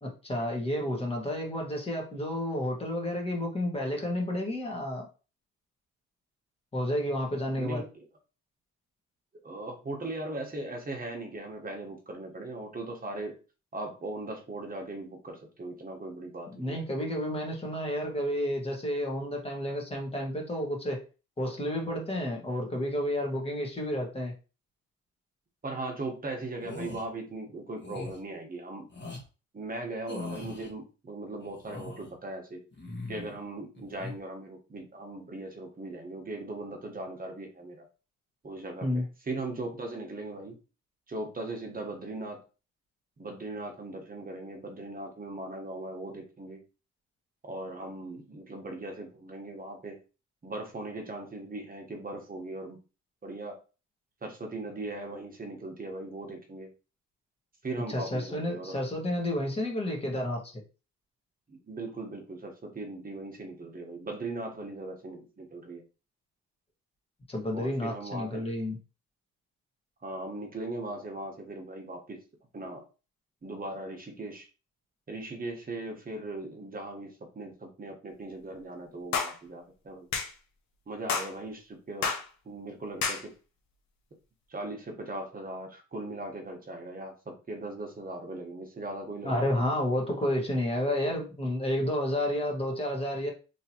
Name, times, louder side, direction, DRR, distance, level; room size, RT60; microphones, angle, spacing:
voice 1, 0.0-5.1 6.7-7.8 16.5-21.0 21.4-24.3 38.8-39.0 57.9-60.6 67.3-68.8 89.2-93.3, left 1 dB, 20° left, 0 dB, 1.6 m, -31 dB
voice 2, 7.6-8.0 9.4-13.4 13.7-16.8 25.6-28.9 29.5-32.6 33.1-37.8 38.4-40.6 41.1-42.4 43.2-46.6 47.4-50.0 50.4-52.8 53.2-53.6 54.2-56.7 57.6-58.8 61.5-65.8 67.5-68.5 70.0-72.2 72.5-72.8 73.4-74.5 75.1-80.1 80.9-82.1 82.4-83.3 84.5-89.6, right 2 dB, 30° right, 3 dB, 1.2 m, -39 dB
sound 1, 26.6-27.0 27.8-28.2 28.9-29.2 30.1-30.7 31.4-32.1 32.7-33.4 33.7-34.1, left 2 dB, 35° left, 1.5 m, -40 dB
sound 2, 79.1-79.3 80.1-80.3 81.1-81.3 82.0-82.2 83.0-83.2, left 5 dB, 65° left, 0.9 m, -29 dB
3.6 x 2.9 x 2.9 m, 0.32 s
cardioid pair, 90°, 30 cm